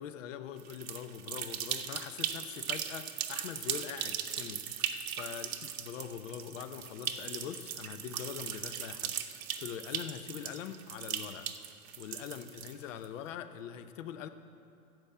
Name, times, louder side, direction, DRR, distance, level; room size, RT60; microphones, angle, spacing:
voice 1, 0.0-4.6 5.1-9.1 9.6-11.5 12.0-14.3, left 9 dB, 55° left, 10 dB, 0.8 m, -43 dB
sound 1, 0.6-13.0, right 9 dB, 65° right, 0.9 m, -38 dB
14.0 x 5.3 x 7.3 m, 2.7 s
hypercardioid pair, 115°, 46 cm